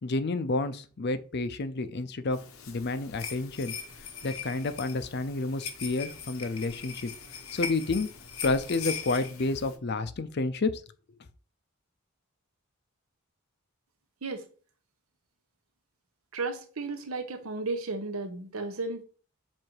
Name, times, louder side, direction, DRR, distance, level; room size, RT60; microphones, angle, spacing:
voice 1, 0.0-2.4 2.7-3.7 4.2-7.1 7.5-8.1 8.4-10.8, left 3 dB, 50° left, 0.5 m, -30 dB
sound 1, 2.3-9.8, left 6 dB, 75° left, 0.9 m, -40 dB
voice 2, 16.3-19.0, right 3 dB, 90° right, 1.0 m, -34 dB
7.4 x 2.7 x 4.7 m
head